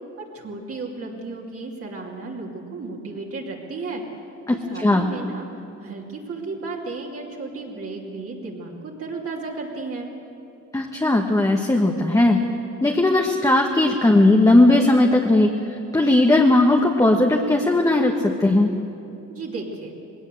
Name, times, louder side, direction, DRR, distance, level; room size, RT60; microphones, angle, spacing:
voice 1, 0.2-4.0 4.5-5.5 5.8-10.1 19.3-19.9, right 3 dB, 50° right, -2 dB, 2.9 m, -34 dB
voice 2, 4.5-5.1 10.7-12.4 12.8-15.5 15.9-18.7, left 2 dB, 10° left, 1 dB, 1.4 m, -17 dB
19.5 x 17.5 x 7.7 m, 2.8 s
cardioid pair, 90°, 30 cm